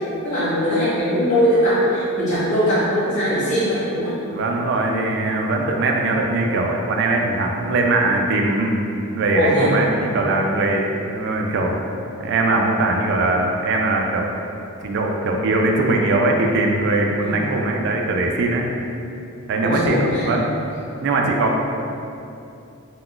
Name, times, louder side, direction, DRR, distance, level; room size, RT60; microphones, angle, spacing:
voice 1, 0.2-4.2 9.3-9.8 17.2-17.5 19.6-20.3, equal, 35° left, -14 dB, 0.8 m, -20 dB
voice 2, 4.3-8.7 9.2-11.8 12.2-14.3 14.8-18.7 19.5-20.4 21.0-21.6, right 2 dB, 55° right, 1 dB, 0.3 m, -21 dB
2.3 x 2.2 x 3.7 m, 2.7 s
head